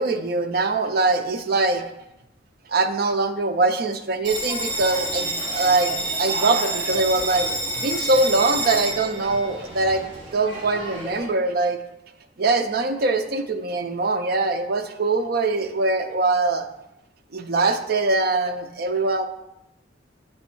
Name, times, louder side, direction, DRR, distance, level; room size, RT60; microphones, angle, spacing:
voice 1, 0.0-1.9 2.7-5.9 6.2-11.8 12.4-16.7 17.3-19.2, right 3 dB, 55° right, 7 dB, 0.5 m, -22 dB
Bell, 4.2-11.2, right 1 dB, 30° right, 2.3 m, -29 dB
8.2 x 3.2 x 4.5 m, 0.87 s
head